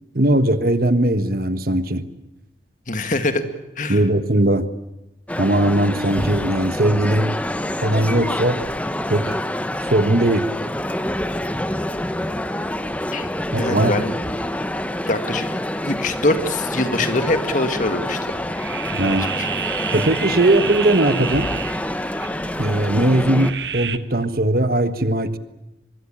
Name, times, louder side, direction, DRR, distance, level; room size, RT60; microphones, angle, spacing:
voice 1, 0.1-2.0 3.9-4.6 5.4-7.4 7.8-8.6 9.1-9.3 9.9-10.5 13.5-13.9 18.9-19.3 19.9-21.5 22.6-25.4, right 1 dB, 55° right, 11 dB, 1.5 m, -19 dB
voice 2, 2.9-3.4 3.8-4.0 13.1-13.3 13.6-14.5 15.0-15.5 15.8-18.4 19.0-19.5, left 2 dB, 45° left, 9 dB, 1.9 m, -23 dB
Male speech man speaking, 5.3-23.5, left 1 dB, 10° left, 0.9 m, -27 dB
sound 1, 18.3-24.0, right 8 dB, 70° right, 1.4 m, -30 dB
24.0 x 22.0 x 8.9 m, 0.93 s
head